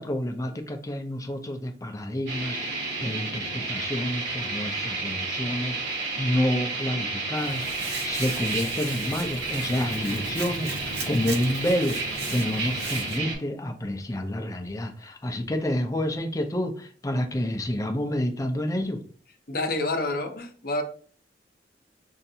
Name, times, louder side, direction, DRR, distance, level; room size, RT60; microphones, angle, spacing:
voice 1, 0.0-12.0 12.3-19.0, left 1 dB, 20° left, 5 dB, 0.5 m, -29 dB
sound 1, 2.3-13.3, right 3 dB, 90° right, 1.6 m, -31 dB
Hands, 7.4-13.2, right 3 dB, 65° right, 0.9 m, -37 dB
voice 2, 19.5-20.8, left 2 dB, 55° left, 5 dB, 0.7 m, -28 dB
5.5 x 2.5 x 2.7 m, 0.43 s
head